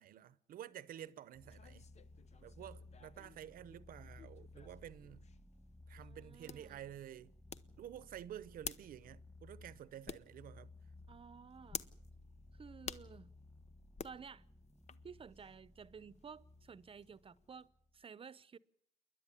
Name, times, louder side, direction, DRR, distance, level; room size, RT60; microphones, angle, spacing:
voice 1, 0.0-1.9 2.4-5.2 5.9-7.3 7.8-10.7, right 11 dB, 75° right, 0.8 m, -51 dB
sound 1, 0.9-17.7, left 6 dB, 50° left, 0.8 m, -53 dB
sound 2, 1.3-18.0, left 2 dB, 10° left, 2.0 m, -59 dB
voice 2, 6.0-6.8 11.1-11.9 12.6-13.3 14.0-14.4 15.0-18.6, right 6 dB, 40° right, 0.8 m, -54 dB
28.0 x 10.5 x 10.0 m
cardioid pair, 80°, 15 cm